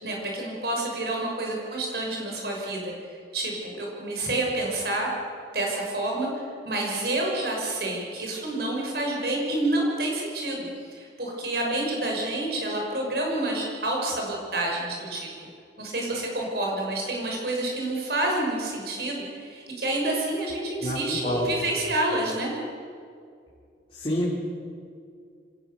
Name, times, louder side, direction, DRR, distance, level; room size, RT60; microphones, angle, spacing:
voice 1, 0.0-2.9 3.3-5.1 5.5-6.3 6.6-10.7 10.9-15.3 15.8-22.5, right 2 dB, 60° right, -1 dB, 6.3 m, -28 dB
voice 2, 20.8-21.6 23.9-24.3, equal, 30° left, -6 dB, 3.3 m, -28 dB
26.0 x 17.5 x 7.0 m, 2.3 s
head